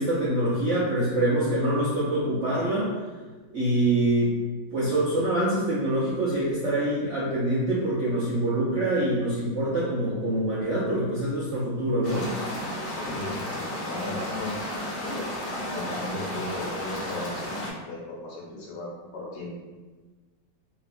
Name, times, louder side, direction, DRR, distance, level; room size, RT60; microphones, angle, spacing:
voice 1, 0.0-2.9 3.5-4.3 4.7-12.3, right 1 dB, 70° right, -9 dB, 0.7 m, -25 dB
sound 1, 12.0-17.7, left 1 dB, 55° left, 1.1 m, -33 dB
voice 2, 12.9-14.6 15.7-19.5, left 2 dB, 75° left, -4 dB, 1.4 m, -36 dB
3.0 x 2.7 x 2.5 m, 1.3 s
omnidirectional pair, 1.9 m